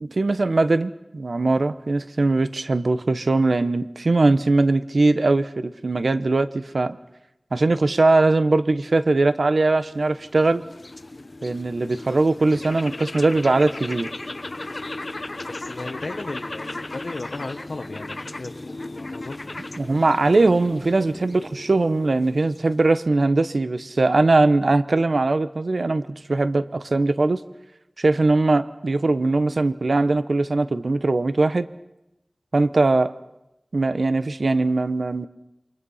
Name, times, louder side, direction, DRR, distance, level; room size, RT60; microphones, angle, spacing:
voice 1, 0.0-7.0 7.5-10.6 11.4-14.1 19.8-27.4 28.0-31.7 32.5-33.1 33.7-35.3, right 2 dB, 80° right, 12 dB, 1.0 m, -20 dB
sound 1, 9.6-23.0, left 2 dB, 50° left, 1.0 m, -36 dB
voice 2, 15.4-19.6, left 3 dB, 85° left, 3 dB, 1.3 m, -35 dB
28.0 x 24.5 x 5.7 m, 0.92 s
wide cardioid pair, 60°, 0 cm